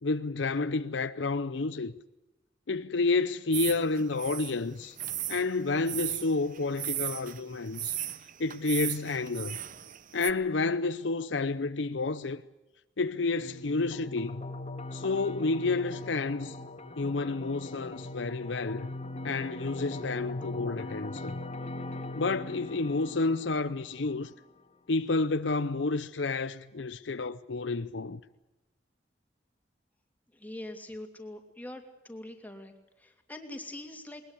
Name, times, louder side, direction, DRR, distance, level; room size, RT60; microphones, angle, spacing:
voice 1, 0.0-1.9 2.7-5.0 5.3-8.0 8.4-9.6 10.1-12.4 13.0-14.4 14.9-16.6 17.0-18.9 19.2-21.4 22.2-24.3 24.9-28.2, left 3 dB, 75° left, 0.7 m, -30 dB
sound 1, 3.5-10.3, right 12 dB, 45° right, 0.9 m, -36 dB
sound 2, 13.4-24.4, left 2 dB, 35° left, 2.0 m, -40 dB
voice 2, 30.3-34.2, left 1 dB, 10° left, 2.8 m, -43 dB
21.0 x 20.5 x 8.4 m
head